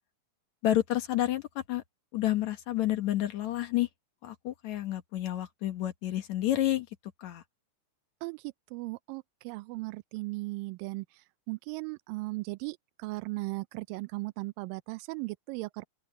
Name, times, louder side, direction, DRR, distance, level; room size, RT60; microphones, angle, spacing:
voice 1, 0.6-1.8 2.1-3.9 4.2-6.9 7.2-7.4, left 13 dB, 65° left, 2.4 m, -29 dB
voice 2, 8.2-11.1 11.5-15.8, right 23 dB, 85° right, 2.2 m, -37 dB
open air
omnidirectional pair, 3.9 m